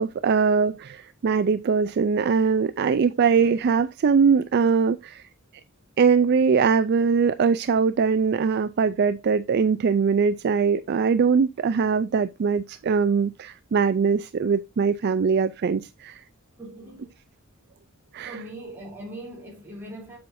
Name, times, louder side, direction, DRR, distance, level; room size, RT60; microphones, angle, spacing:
voice 1, 0.0-5.2 6.0-16.2 18.1-18.4, right 5 dB, 50° right, 0.4 m, -22 dB
voice 2, 16.6-17.1 18.2-20.2, right 1 dB, 10° right, 2.9 m, -40 dB
7.7 x 6.9 x 2.6 m
head